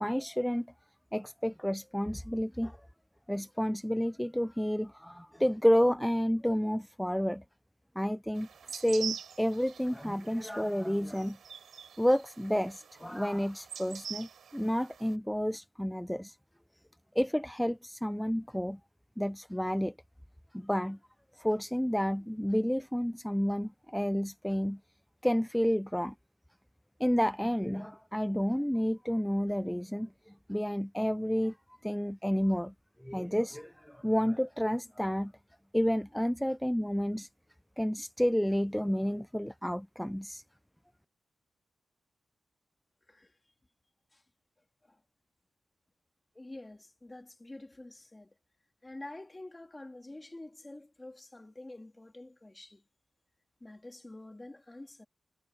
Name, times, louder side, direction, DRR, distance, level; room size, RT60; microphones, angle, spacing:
voice 1, 0.0-0.7 1.1-2.8 3.3-7.4 8.0-11.4 12.0-16.4 17.2-18.8 19.2-19.9 20.5-21.0 21.4-24.8 25.2-26.1 27.0-31.5 31.8-32.7 33.0-35.3 35.7-37.3 37.8-40.4, equal, 5° left, 0.4 m, -30 dB
sound 1, 8.4-15.1, right 7 dB, 85° right, 3.8 m, -45 dB
voice 2, 43.1-43.4 44.1-44.2 44.8-45.0 46.3-48.3 48.8-52.8 53.6-55.0, left 2 dB, 20° left, 3.0 m, -48 dB
wide cardioid pair, 95°, 0 cm